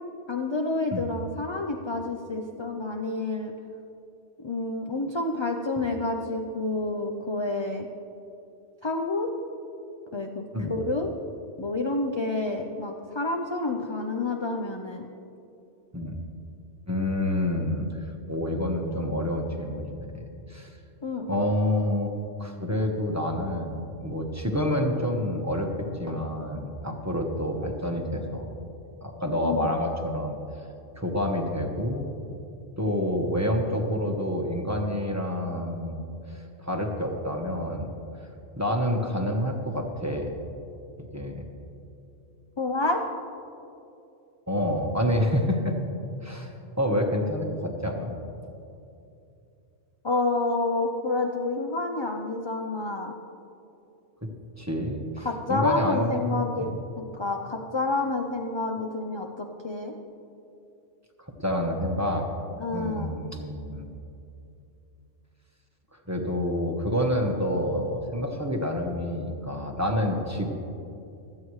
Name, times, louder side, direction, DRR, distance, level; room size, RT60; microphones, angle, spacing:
voice 1, 0.3-3.5 4.4-7.9 8.8-9.3 10.1-11.1 11.6-15.1 21.0-21.3 29.4-29.7 42.6-43.0 50.0-53.1 55.2-56.7 57.0-59.9 62.6-63.1, left 2 dB, 35° left, 3 dB, 0.5 m, -29 dB
voice 2, 16.9-20.8 21.3-25.7 26.0-28.5 29.0-30.4 31.0-32.1 32.8-36.0 36.3-37.9 38.6-40.3 41.1-41.4 44.5-45.8 46.2-48.1 54.6-56.8 61.4-62.3 62.7-63.9 66.1-70.5, left 1 dB, 15° right, 2 dB, 1.0 m, -28 dB
25.5 x 8.5 x 3.2 m, 2.7 s
omnidirectional pair, 1.3 m